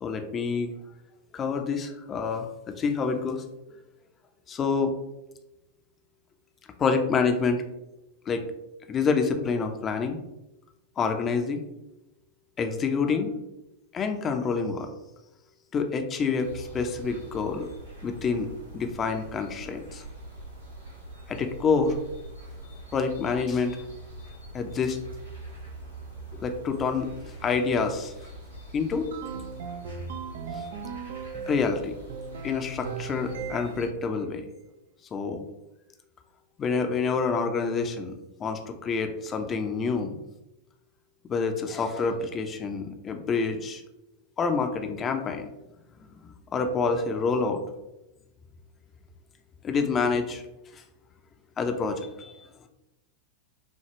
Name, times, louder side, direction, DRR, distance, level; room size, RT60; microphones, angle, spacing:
voice 1, 0.0-0.7 1.3-3.4 4.5-4.9 6.8-7.6 8.3-8.4 8.9-10.2 11.0-11.6 12.6-13.3 13.9-14.9 15.7-17.7 18.0-18.5 18.7-20.0 21.3-21.9 22.9-23.8 24.5-25.0 26.3-27.1 27.4-28.1 28.7-29.1 30.5-30.6 31.5-32.0 32.4-34.5 35.1-35.4 36.6-38.1 38.4-40.2 41.3-43.8 44.4-45.5 46.2-47.6 49.6-50.4 50.7-50.8 51.6-52.3, left 5 dB, 25° left, 5 dB, 0.6 m, -27 dB
sound 1, 16.4-33.9, right 2 dB, 90° right, 1.4 m, -44 dB
sound 2, 29.1-31.7 32.1-34.0, right 6 dB, 55° right, 0.4 m, -37 dB
6.7 x 2.3 x 3.0 m, 0.94 s
figure-of-eight pair, 90°, 0 cm